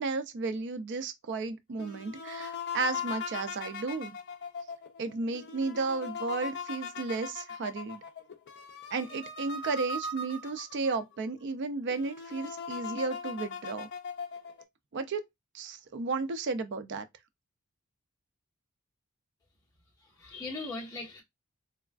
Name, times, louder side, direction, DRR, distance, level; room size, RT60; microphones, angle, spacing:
voice 1, 0.0-4.1 5.0-8.0 8.9-13.9 14.9-15.2 15.5-17.0, right 4 dB, 55° right, 0.4 m, -33 dB
sound 1, 1.8-11.0 11.5-11.6 11.9-14.6, left 5 dB, 50° left, 0.5 m, -39 dB
voice 2, 20.0-21.2, left 3 dB, 20° left, 1.1 m, -39 dB
3.3 x 2.3 x 2.3 m
head